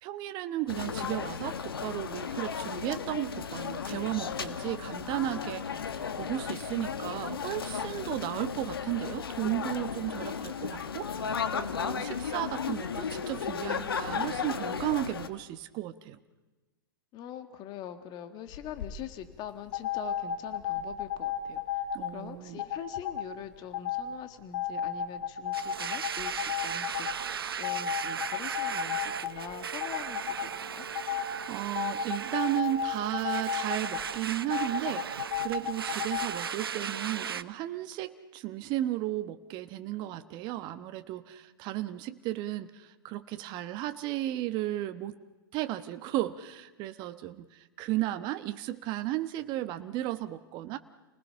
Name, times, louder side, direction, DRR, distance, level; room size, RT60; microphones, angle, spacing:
voice 1, 0.0-11.3 11.5-16.2 21.9-22.6 31.3-45.2 45.5-50.8, right 15 dB, 40° right, 9 dB, 1.1 m, -34 dB
sound 1, 0.7-15.3, left 6 dB, 85° left, 1.6 m, -35 dB
voice 2, 17.1-21.8 22.1-27.3 27.5-30.8, left 9 dB, 35° left, 9 dB, 1.8 m, -43 dB
sound 2, 18.5-18.9 19.7-22.1 22.6-23.2 23.7-24.0 24.5-27.1 27.6-29.5 29.8-30.5 30.9-31.3 31.7-34.0 34.5-36.3, left 9 dB, 60° left, 4.5 m, -33 dB
Domestic sounds home sounds, 25.5-37.4, right 7 dB, 85° right, 0.8 m, -37 dB
29.5 x 19.5 x 5.7 m, 1.2 s
hypercardioid pair, 115°, 12 cm